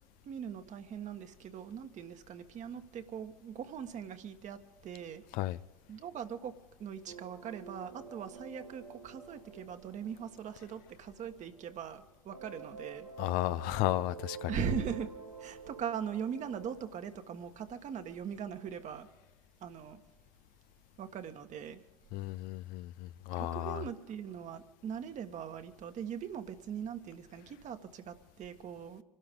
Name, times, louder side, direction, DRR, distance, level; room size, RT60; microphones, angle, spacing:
voice 1, 0.2-5.2 5.9-13.1 14.5-15.1 15.4-19.1 19.6-20.0 21.0-21.8 23.4-29.0, right 7 dB, 45° right, 1.5 m, -40 dB
sound 1, 7.1-11.9 12.3-16.8, right 5 dB, 90° right, 1.4 m, -49 dB
voice 2, 13.2-14.5 22.1-23.8, left 15 dB, 55° left, 0.6 m, -33 dB
26.5 x 12.5 x 3.8 m
figure-of-eight pair, 65°, 18 cm